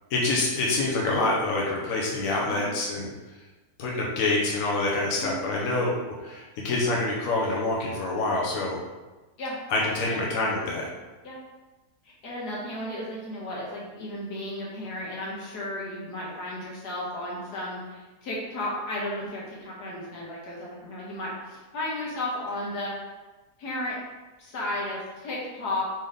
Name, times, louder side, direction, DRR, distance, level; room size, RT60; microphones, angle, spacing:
voice 1, 0.1-3.1 3.8-8.8 9.7-10.9, left 2 dB, 60° left, -3 dB, 1.1 m, -26 dB
voice 2, 9.4-10.2 11.2-11.4 12.2-23.1 23.6-24.0 24.4-25.9, left 1 dB, 80° left, -5 dB, 1.8 m, -34 dB
4.1 x 3.4 x 3.7 m, 1.2 s
omnidirectional pair, 1.7 m